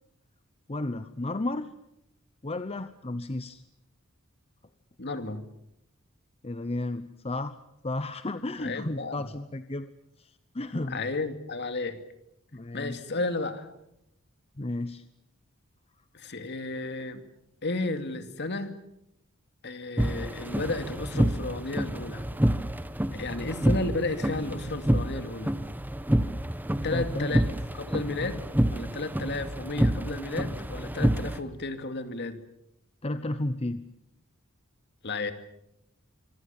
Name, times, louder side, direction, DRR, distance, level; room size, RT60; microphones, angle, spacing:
voice 1, 0.7-1.7 2.4-3.6 6.4-7.6 7.8-9.9 10.2-11.0 12.5-13.0 14.6-15.0 26.9-27.3 28.2-28.3 33.0-33.8, left 2 dB, 30° left, 11 dB, 0.9 m, -33 dB
voice 2, 5.0-5.4 8.6-9.3 10.9-12.0 12.7-13.7 16.1-17.2 17.6-18.8 19.6-22.3 23.1-25.6 26.8-27.4 27.7-28.4 28.7-32.4 35.0-35.3, left 2 dB, 55° left, 8 dB, 2.5 m, -33 dB
sound 1, 20.0-31.4, right 1 dB, 10° right, 1.1 m, -28 dB
26.0 x 25.0 x 7.2 m, 0.79 s
head